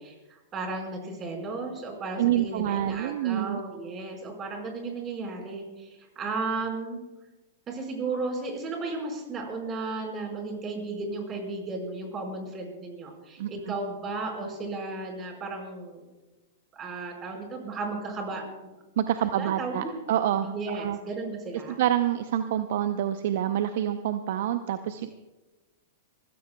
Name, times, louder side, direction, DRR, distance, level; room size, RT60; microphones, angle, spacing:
voice 1, 0.0-7.0 7.7-16.0 16.7-18.7 19.2-19.9 20.4-21.8, right 3 dB, 30° right, 2 dB, 4.9 m, -34 dB
voice 2, 2.2-3.6 13.4-13.5 19.0-21.0 21.8-25.1, right 11 dB, 65° right, 10 dB, 0.7 m, -27 dB
28.0 x 15.5 x 2.3 m, 1.1 s
hypercardioid pair, 110°, 0 cm